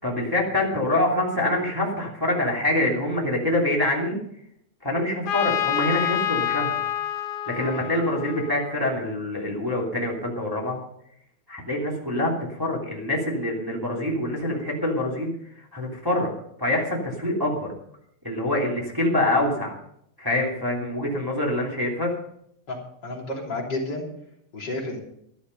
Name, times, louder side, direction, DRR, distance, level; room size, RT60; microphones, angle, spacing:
voice 1, 0.0-4.2 4.8-6.8 7.5-10.8 11.5-15.3 15.6-16.3 16.6-17.7 18.2-19.7 20.2-22.1, left 1 dB, 5° right, -2 dB, 2.5 m, -25 dB
Trumpet, 5.3-9.0, left 11 dB, 75° left, 1.4 m, -28 dB
voice 2, 22.7-24.1 24.5-25.0, left 2 dB, 35° left, -2 dB, 3.8 m, -31 dB
13.5 x 11.5 x 5.4 m, 0.73 s
omnidirectional pair, 3.4 m